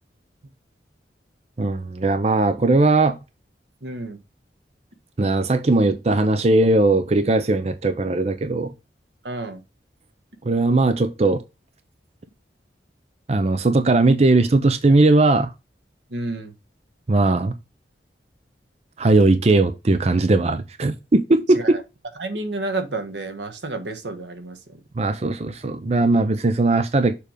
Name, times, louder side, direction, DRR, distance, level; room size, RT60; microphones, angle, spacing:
voice 1, 1.6-3.2 5.2-8.7 10.4-11.4 13.3-15.5 17.1-17.5 19.0-21.8 25.0-27.2, right 2 dB, 35° right, 0.5 m, -19 dB
voice 2, 3.8-4.2 9.2-9.6 16.1-16.5 21.5-21.8 22.2-24.8, right 2 dB, 80° right, 1.3 m, -30 dB
6.8 x 3.3 x 4.9 m
head